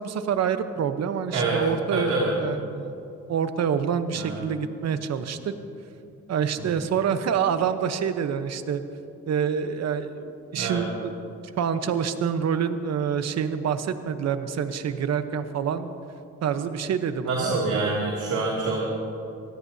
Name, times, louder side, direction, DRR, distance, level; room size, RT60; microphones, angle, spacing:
voice 1, 0.0-2.9 3.3-5.5 6.3-8.8 9.3-11.1 11.6-15.9 16.4-18.0, right 7 dB, 60° right, 9 dB, 1.0 m, -27 dB
voice 2, 1.9-2.3 4.1-4.4 10.5-10.8 17.2-18.8, right 3 dB, 85° right, -5 dB, 2.6 m, -26 dB
24.5 x 17.0 x 2.8 m, 2.7 s
cardioid pair, 90°, 30 cm